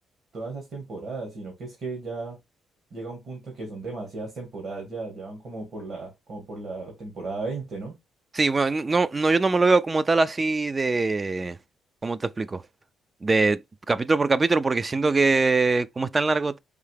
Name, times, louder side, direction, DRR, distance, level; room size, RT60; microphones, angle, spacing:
voice 1, 0.3-2.4 2.9-7.9, right 3 dB, 60° right, 1.8 m, -35 dB
voice 2, 8.3-11.6 12.0-12.6 13.2-13.6 13.9-16.6, right 3 dB, 25° right, 0.3 m, -22 dB
4.8 x 2.7 x 3.3 m
cardioid pair, 90°, 0 cm